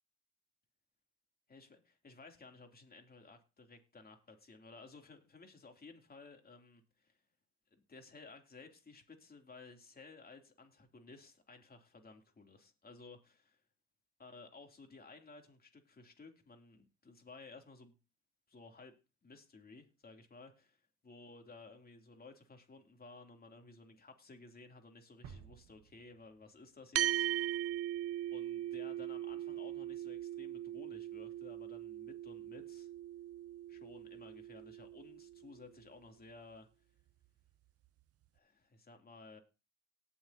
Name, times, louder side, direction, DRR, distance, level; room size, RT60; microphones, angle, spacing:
voice 1, 1.5-7.2 7.7-13.6 14.2-18.0 18.5-19.0 19.2-27.5 28.3-32.9 33.7-36.7 38.3-39.4, left 3 dB, 30° left, 3.1 m, -56 dB
sound 1, 25.2-27.1, right 7 dB, 85° right, 1.4 m, -56 dB
sound 2, 27.0-35.6, right 12 dB, 50° right, 0.5 m, -39 dB
18.5 x 7.1 x 2.9 m
cardioid pair, 90°, 30 cm